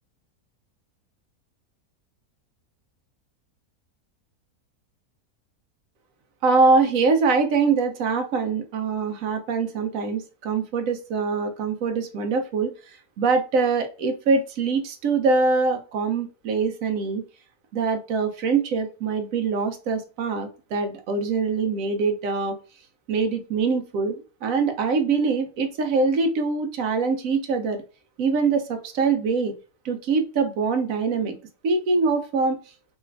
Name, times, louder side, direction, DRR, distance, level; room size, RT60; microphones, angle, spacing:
voice 1, 6.4-17.2 17.7-22.6 23.1-27.8 28.2-29.5 29.8-31.4 31.6-32.6, right 4 dB, 65° right, 6 dB, 1.0 m, -23 dB
3.1 x 2.4 x 3.2 m, 0.34 s
omnidirectional pair, 1.6 m